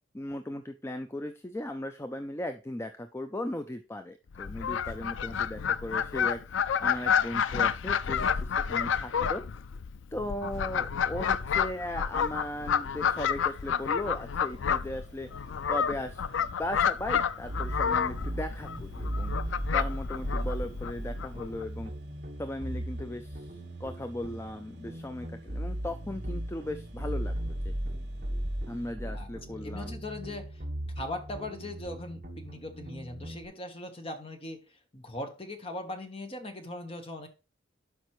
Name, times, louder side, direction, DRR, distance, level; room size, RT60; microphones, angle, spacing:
voice 1, 0.1-9.4 10.1-15.3 15.7-19.3 19.7-21.9 22.4-27.7 28.7-29.9, left 1 dB, 15° left, 8 dB, 0.4 m, -37 dB
Fowl, 4.3-21.6, left 7 dB, 85° left, 0.4 m, -30 dB
sound 1, 11.2-28.9, right 2 dB, 60° right, 1.9 m, -58 dB
sound 2, 17.5-33.4, equal, 45° right, 1.4 m, -37 dB
voice 2, 29.5-30.6 30.9-37.3, left 1 dB, 30° left, 6 dB, 1.3 m, -40 dB
12.0 x 5.2 x 3.2 m, 0.31 s
head